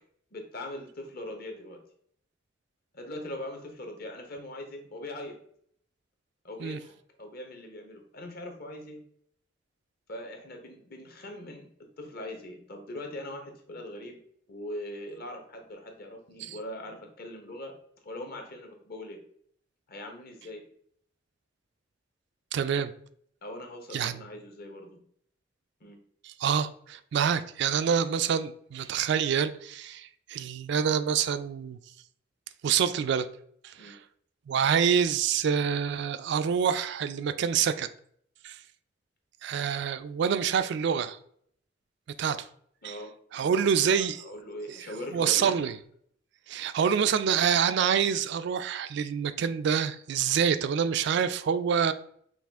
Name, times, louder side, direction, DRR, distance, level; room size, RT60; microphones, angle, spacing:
voice 1, 0.3-1.8 2.9-5.4 6.4-9.0 10.1-11.7 12.0-14.2 14.5-17.7 18.0-19.2 19.9-20.6 23.4-25.0 25.8-26.0 33.8-33.9 42.8-43.1 43.9-45.7 46.8-47.0, left 1 dB, 55° left, 1.0 m, -41 dB
voice 2, 22.5-22.9 23.9-24.2 26.2-31.8 32.6-33.3 33.6-34.0 34.5-37.9 38.4-38.6 39.4-41.2 42.2-42.5 42.8-43.0 43.3-44.2 44.7-45.8 46.5-51.9, right 7 dB, 65° right, 0.3 m, -27 dB
5.7 x 2.4 x 3.5 m
head